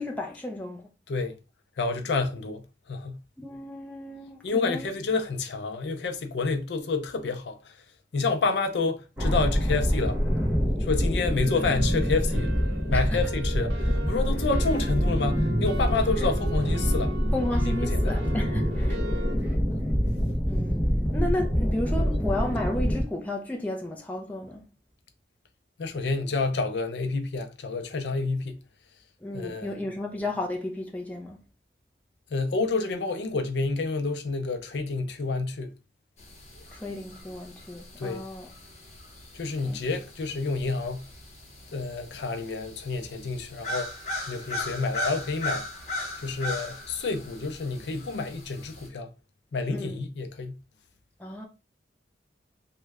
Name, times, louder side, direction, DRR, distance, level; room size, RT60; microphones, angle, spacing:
voice 1, 0.0-0.9 3.4-5.0 12.9-13.2 16.2-16.3 17.3-19.0 20.5-24.6 29.2-31.4 36.7-38.5 39.6-39.8 49.7-50.0 51.2-51.5, left 1 dB, 10° left, 0.5 m, -33 dB
voice 2, 1.1-1.4 1.8-3.2 4.4-7.8 8.1-10.2 10.8-12.5 12.9-17.2 17.6-18.2 18.7-18.8 25.8-28.6 29.3-29.8 32.3-35.8 38.0-38.2 39.3-41.1 41.7-43.9 44.3-45.7 46.2-49.1 49.5-50.6, left 3 dB, 75° left, 0.5 m, -29 dB
sound 1, 9.2-23.0, equal, 10° right, 0.8 m, -26 dB
sound 2, 11.4-19.4, right 3 dB, 90° right, 0.5 m, -39 dB
sound 3, 36.2-48.9, left 1 dB, 40° left, 0.8 m, -38 dB
3.1 x 2.2 x 3.4 m
head